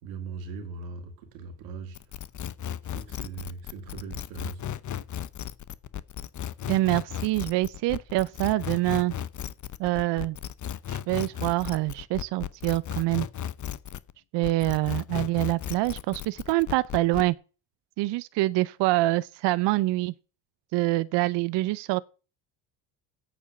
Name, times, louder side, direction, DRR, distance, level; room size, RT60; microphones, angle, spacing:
voice 1, 0.0-2.0 2.9-4.6, right 4 dB, 90° right, 2.2 m, -39 dB
sound 1, 1.9-14.1 14.4-17.3, left 10 dB, 40° left, 0.9 m, -35 dB
voice 2, 6.7-9.1 9.8-10.4 10.9-13.3 14.3-17.3 18.0-20.1 20.7-22.0, right 18 dB, 65° right, 0.7 m, -25 dB
8.5 x 7.2 x 6.7 m
supercardioid pair, 65°, 46 cm